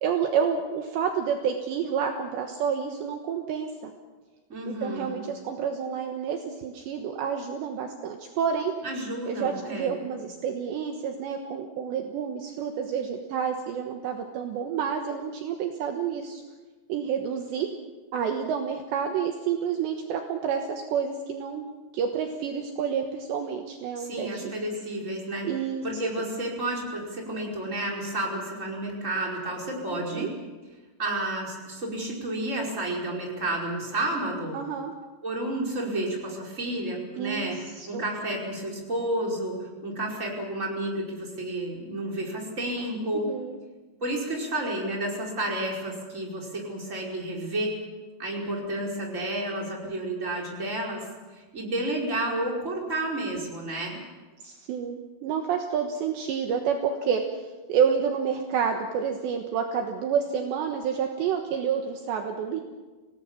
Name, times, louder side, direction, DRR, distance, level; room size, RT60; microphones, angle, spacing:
voice 1, 0.0-3.9 4.7-8.7 9.3-16.4 16.9-17.7 18.1-21.6 21.9-24.5 25.4-25.8 26.2-26.3 29.9-30.3 34.5-34.9 37.2-38.0 43.1-43.6 54.4-62.6, right 7 dB, 70° right, 4 dB, 3.3 m, -29 dB
voice 2, 4.5-5.2 8.8-10.0 24.0-25.5 25.8-30.3 31.0-34.6 35.2-37.6 37.9-43.3 44.0-47.8 48.2-51.0 51.3-54.0, right 1 dB, 15° right, -1 dB, 4.8 m, -31 dB
27.5 x 18.0 x 7.3 m, 1.3 s
omnidirectional pair, 5.7 m